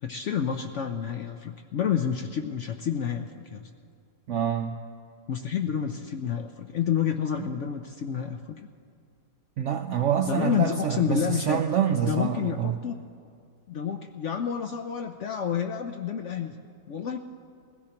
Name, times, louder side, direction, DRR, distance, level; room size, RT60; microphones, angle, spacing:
voice 1, 0.0-3.7 5.3-8.6 10.2-11.6 12.0-13.0 13.7-16.5 16.9-17.2, left 8 dB, 65° left, 5 dB, 0.7 m, -29 dB
voice 2, 4.3-4.8 9.6-12.7, right 9 dB, 70° right, 5 dB, 0.7 m, -26 dB
21.5 x 16.0 x 2.9 m, 2.3 s
omnidirectional pair, 1.8 m